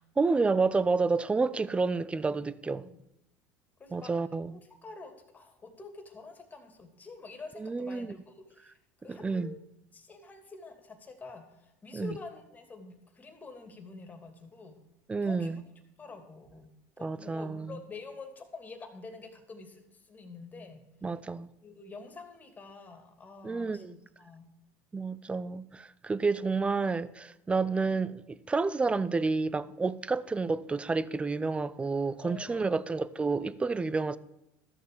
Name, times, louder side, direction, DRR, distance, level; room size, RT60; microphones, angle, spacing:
voice 1, 0.2-2.9 3.9-4.6 7.6-8.1 9.1-9.6 11.9-12.2 15.1-15.6 17.0-17.8 21.0-21.5 23.4-24.0 24.9-34.2, right 4 dB, 15° right, 0.6 m, -30 dB
voice 2, 3.8-4.1 4.5-14.8 15.2-15.6 16.0-20.8 21.6-24.5 32.2-32.9, left 4 dB, 20° left, 2.6 m, -47 dB
13.5 x 6.9 x 6.9 m
supercardioid pair, 110°, 7 cm